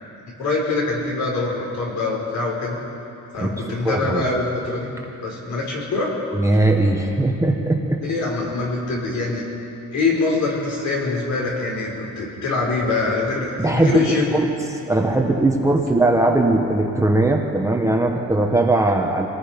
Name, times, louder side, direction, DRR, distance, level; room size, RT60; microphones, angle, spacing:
voice 1, 0.4-2.8 3.3-4.9 5.2-6.1 8.0-9.5 9.9-14.3, left 3 dB, 65° left, -2 dB, 5.5 m, -24 dB
voice 2, 3.8-4.2 6.3-8.0 13.6-19.3, right 2 dB, 10° right, 1 dB, 1.2 m, -19 dB
27.0 x 18.5 x 5.3 m, 2.9 s
cardioid pair, 170°, 31 cm